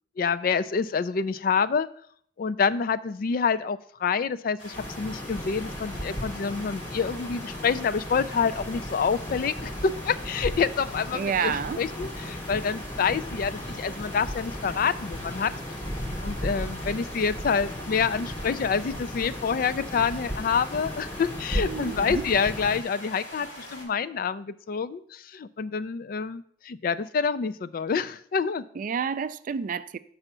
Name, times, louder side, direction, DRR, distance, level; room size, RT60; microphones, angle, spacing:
voice 1, 0.2-1.9 2.4-15.5 16.2-28.6, left 6 dB, 50° left, 0.4 m, -27 dB
sound 1, 4.6-23.8, equal, 90° left, 3.8 m, -43 dB
sound 2, 4.7-22.8, equal, 10° left, 0.7 m, -36 dB
sound 3, 9.9-10.6 10.9-11.9 12.2-13.3 13.6-14.6 14.9-15.0, left 4 dB, 70° left, 1.1 m, -50 dB
voice 2, 11.1-11.8 21.6-22.3 28.8-30.0, right 6 dB, 45° right, 0.3 m, -29 dB
5.9 x 5.5 x 6.7 m
head